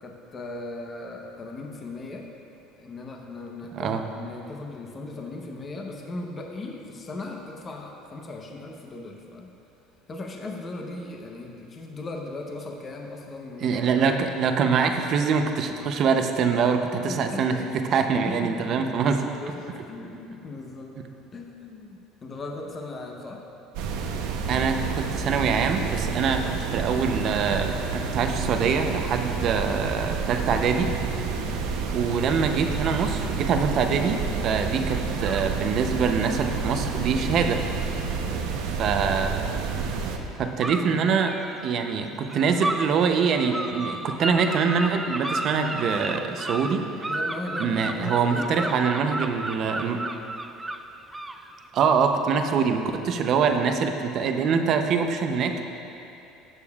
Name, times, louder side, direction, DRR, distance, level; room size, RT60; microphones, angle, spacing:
voice 1, 0.0-2.3 2.8-9.5 10.1-14.6 16.9-17.7 18.1-21.0 21.3-23.4 31.3-31.6 38.2-38.6 47.1-48.7, left 2 dB, 25° left, 1 dB, 0.8 m, -38 dB
voice 2, 13.6-17.6 17.9-19.2 24.5-30.9 31.9-34.2 34.4-37.6 38.8-39.4 40.4-41.4 41.6-46.9 47.6-50.0 51.7-55.6, right 6 dB, 45° right, 5 dB, 0.7 m, -24 dB
sound 1, 23.7-40.2, right 5 dB, 80° right, 0.8 m, -29 dB
sound 2, 35.2-35.6 36.5-36.7 39.7-39.9 40.6-41.7 42.3-42.9 43.2-51.6, right 2 dB, 10° right, 0.3 m, -33 dB
18.0 x 6.8 x 2.4 m, 2.8 s
cardioid pair, 130°, 0 cm